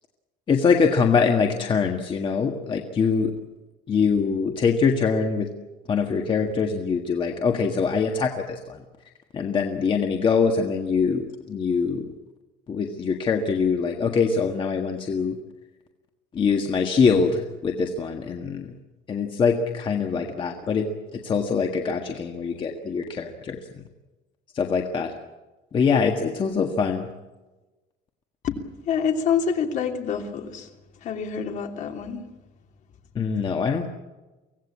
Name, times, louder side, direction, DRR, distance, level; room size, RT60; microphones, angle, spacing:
voice 1, 0.5-3.3 3.9-5.5 5.9-8.8 9.3-12.1 12.7-15.3 16.3-18.7 19.1-20.9 21.2-23.6 24.5-25.1 25.7-27.1 33.1-33.9, left 5 dB, 30° left, 3 dB, 1.7 m, -23 dB
voice 2, 28.8-30.7 31.0-32.2, left 7 dB, 45° left, 4 dB, 3.0 m, -26 dB
24.5 x 17.5 x 8.6 m, 1.1 s
cardioid pair, 160°, 17 cm